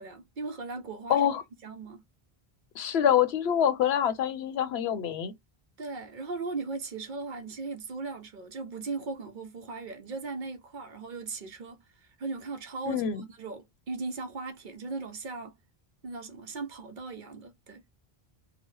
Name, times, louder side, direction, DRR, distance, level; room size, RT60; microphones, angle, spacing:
voice 1, 0.0-1.3 1.6-2.0 5.8-15.6 16.0-17.8, right 3 dB, 55° right, 0.7 m, -38 dB
voice 2, 1.1-1.4 2.8-5.3 12.9-13.2, left 9 dB, 85° left, 0.9 m, -26 dB
2.9 x 2.1 x 3.1 m
omnidirectional pair, 1.0 m